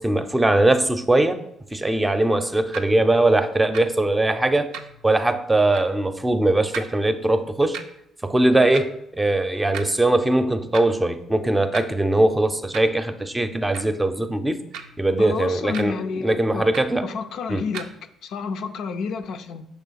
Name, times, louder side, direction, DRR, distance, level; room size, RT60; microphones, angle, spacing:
voice 1, 0.0-1.4 1.7-4.7 5.0-7.8 8.2-14.6 15.0-17.1 17.5-17.6, right 2 dB, 15° right, 9 dB, 0.6 m, -21 dB
sound 1, 2.7-2.9 3.7-3.8 4.7-5.0 5.7-5.9 6.7-6.9 7.7-7.8 8.7-8.9 9.7-9.9 10.7-10.9 11.7-11.8 12.7-13.0 13.7-13.9 14.7-15.0 15.7-15.9 16.7-17.0 17.7-17.9, right 7 dB, 75° right, 0.5 m, -35 dB
voice 2, 15.2-16.7 17.0-17.9 18.2-19.6, left 5 dB, 70° left, 7 dB, 0.4 m, -30 dB
5.4 x 3.6 x 5.7 m, 0.78 s
hypercardioid pair, 55°, 0 cm